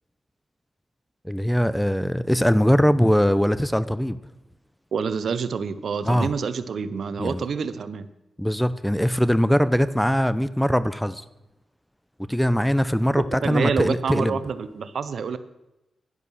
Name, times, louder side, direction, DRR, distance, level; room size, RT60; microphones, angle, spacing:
voice 1, 1.2-4.2 6.0-6.3 7.2-7.4 8.4-11.2 12.3-14.4, equal, 5° left, 0.7 m, -21 dB
voice 2, 4.9-8.1 13.4-15.4, right 6 dB, 70° right, 0.8 m, -27 dB
11.0 x 11.0 x 6.4 m
cardioid pair, 70°, 0 cm